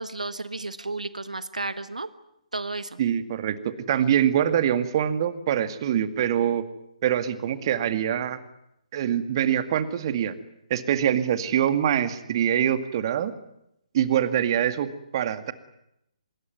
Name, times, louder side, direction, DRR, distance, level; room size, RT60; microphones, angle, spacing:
voice 1, 0.0-2.1 2.5-3.0, right 2 dB, 85° right, 13 dB, 1.4 m, -32 dB
voice 2, 3.0-6.7 7.0-8.4 8.9-10.3 10.7-13.3 13.9-15.5, right 10 dB, 40° right, 11 dB, 2.1 m, -24 dB
25.0 x 21.5 x 9.6 m, 0.79 s
figure-of-eight pair, 140°, 4 cm